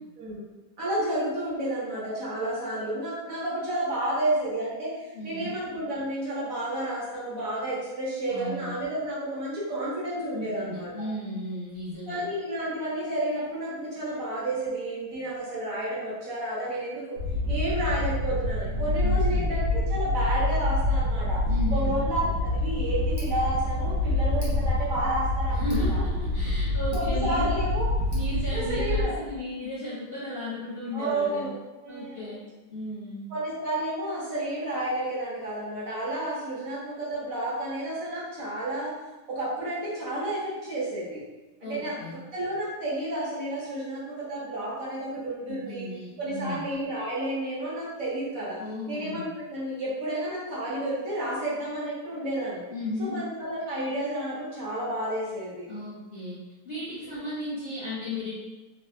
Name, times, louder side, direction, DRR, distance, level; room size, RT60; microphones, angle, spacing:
voice 1, 0.8-4.9 5.2-11.1 12.1-17.2 17.5-21.4 21.7-25.6 25.9-26.0 26.9-27.9 28.5-29.2 30.9-31.5 31.8-32.3 33.3-38.9 39.3-41.2 41.6-45.9 46.2-48.6 48.9-52.6 53.0-55.7, right 1 dB, 60° right, -7 dB, 1.2 m, -31 dB
voice 2, 5.1-5.6 8.3-8.7 10.3-12.2 19.0-19.5 21.5-22.0 25.5-27.5 28.1-31.5 31.9-32.4 32.7-33.2 41.6-42.1 45.5-46.6 48.6-49.3 52.7-53.2 55.7-56.4 56.6-58.3, left 1 dB, 55° left, -9 dB, 0.7 m, -35 dB
sound 1, 17.2-29.0, left 2 dB, 85° right, 1.2 m, -26 dB
Tick, 22.3-28.4, equal, 20° left, 0.4 m, -40 dB
3.2 x 2.3 x 2.5 m, 1.1 s
omnidirectional pair, 1.7 m